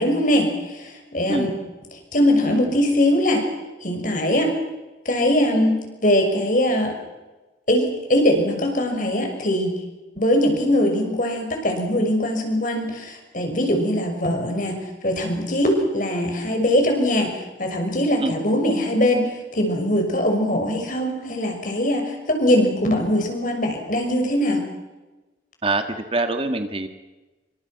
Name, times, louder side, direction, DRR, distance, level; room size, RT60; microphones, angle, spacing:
voice 1, 0.0-1.5 2.1-3.4 3.8-4.5 5.0-7.0 7.7-9.8 10.2-24.6, left 1 dB, 45° left, 3 dB, 6.2 m, -21 dB
voice 2, 25.6-26.9, right 2 dB, 30° right, 7 dB, 1.8 m, -24 dB
28.0 x 25.0 x 6.0 m, 1.1 s
head